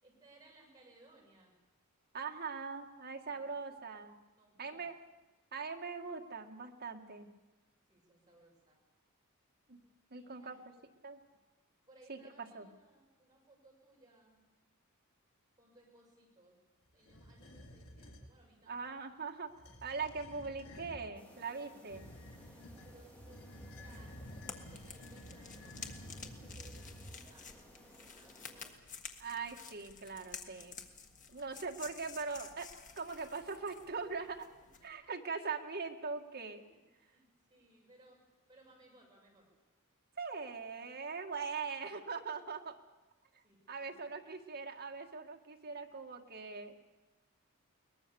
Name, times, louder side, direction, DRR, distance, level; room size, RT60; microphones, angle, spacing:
voice 1, 0.0-1.6 3.2-3.6 4.4-4.9 7.9-8.8 10.1-10.6 11.9-14.4 15.6-16.6 16.9-19.0 22.5-24.2 24.5-28.6 34.8-35.1 36.6-39.5 43.4-44.1, right 2 dB, 20° right, -3 dB, 6.9 m, -64 dB
voice 2, 2.1-4.2 4.6-5.0 5.5-7.3 9.7-9.8 10.1-10.6 11.0-11.2 12.1-12.7 18.7-19.5 19.8-22.0 29.2-30.8 31.3-32.7 33.0-34.5 34.8-36.6 40.2-42.8 43.7-46.8, right 4 dB, 45° right, 3 dB, 1.8 m, -41 dB
sound 1, 17.0-18.3 19.5-21.1 21.9-27.4, equal, 70° left, 3.0 m, -51 dB
sound 2, 21.1-28.7, equal, 5° left, 4.7 m, -59 dB
sound 3, 23.9-34.9, left 6 dB, 35° left, 1.6 m, -51 dB
22.5 x 20.0 x 7.1 m, 1.1 s
head